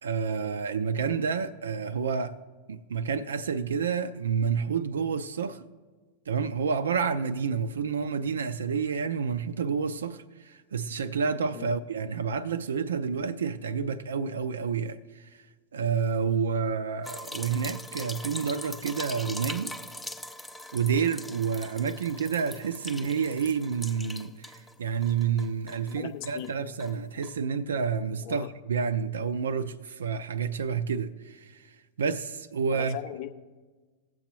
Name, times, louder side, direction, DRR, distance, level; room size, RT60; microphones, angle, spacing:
voice 1, 0.0-2.4 2.7-5.6 6.3-15.3 15.7-19.7 20.7-33.0, right 6 dB, 65° right, 0.4 m, -29 dB
sound 1, 17.0-24.7 25.0-26.5 26.8-26.9 27.2-27.3, left 1 dB, 5° left, 0.4 m, -41 dB
voice 2, 25.9-26.6 28.2-28.5 32.7-33.3, left 12 dB, 45° left, 0.6 m, -39 dB
19.5 x 7.6 x 3.0 m
figure-of-eight pair, 90°, 0 cm